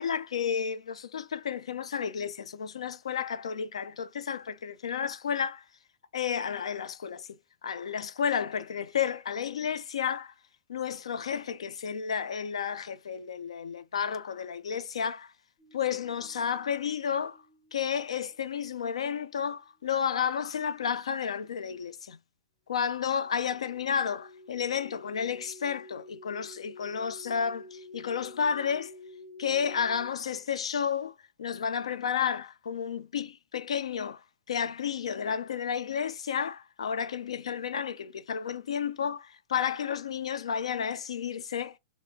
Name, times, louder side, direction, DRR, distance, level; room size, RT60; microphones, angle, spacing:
voice 1, 0.0-5.6 6.1-10.3 10.7-15.3 15.7-17.4 17.7-22.2 22.7-28.9 29.4-41.8, left 7 dB, 75° left, 0.4 m, -32 dB
sound 1, 15.6-19.8 22.8-30.1, left 2 dB, 15° left, 1.0 m, -51 dB
3.2 x 2.5 x 2.6 m
hypercardioid pair, 105°, 3 cm